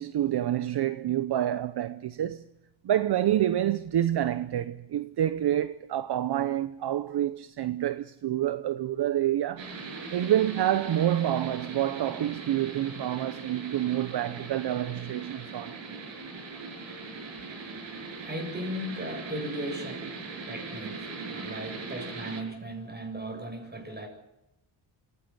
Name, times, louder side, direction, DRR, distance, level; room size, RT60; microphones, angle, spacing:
voice 1, 0.0-2.4 2.8-9.7 10.1-15.8, right 12 dB, 55° right, 0.8 m, -28 dB
sound 1, 9.6-22.4, right 4 dB, 75° right, 7.8 m, -40 dB
voice 2, 17.5-24.1, equal, 20° right, 7.6 m, -38 dB
25.0 x 17.0 x 8.0 m
cardioid pair, 100°, 46 cm